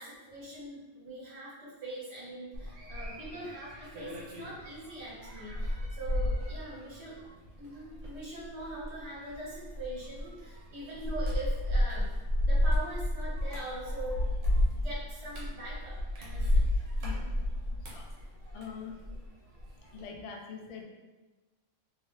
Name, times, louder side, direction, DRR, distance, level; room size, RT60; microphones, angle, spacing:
voice 1, 0.0-7.2 7.6-12.1 12.4-14.3 14.7-16.6 17.1-17.3, right 1 dB, 65° right, -6 dB, 1.4 m, -42 dB
sound 1, 2.5-19.3 19.6-20.0, left 1 dB, 80° right, 1.2 m, -32 dB
voice 2, 17.0-18.1 18.5-19.2 19.9-20.8, left 6 dB, 60° left, 1 dB, 0.4 m, -45 dB
2.9 x 2.7 x 3.1 m, 1.2 s
omnidirectional pair, 1.3 m